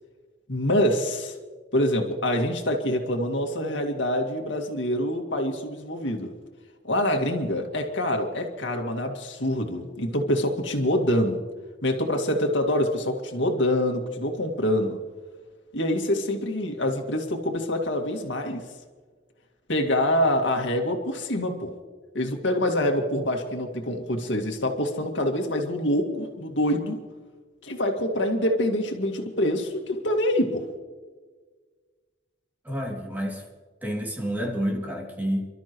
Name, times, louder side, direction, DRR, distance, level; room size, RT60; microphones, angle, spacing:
voice 1, 0.5-1.4 1.7-6.3 6.8-11.4 11.8-15.0 15.7-18.6 19.7-21.7 22.1-27.0 27.6-30.7, left 1 dB, 80° left, 3 dB, 2.1 m, -25 dB
voice 2, 32.6-33.4 33.8-35.5, equal, 10° right, -1 dB, 2.7 m, -29 dB
28.5 x 13.0 x 3.1 m, 1.4 s
head